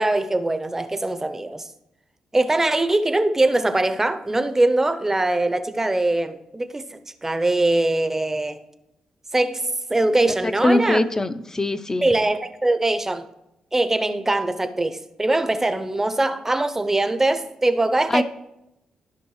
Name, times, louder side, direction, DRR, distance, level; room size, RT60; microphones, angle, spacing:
voice 1, 0.0-1.7 2.3-8.6 9.3-11.0 12.0-13.2 13.7-18.2, right 2 dB, 15° right, 0.7 m, -22 dB
voice 2, 10.4-12.1 18.1-18.2, left 2 dB, 25° left, 0.6 m, -22 dB
14.0 x 5.4 x 3.1 m
cardioid pair, 75°, 2 cm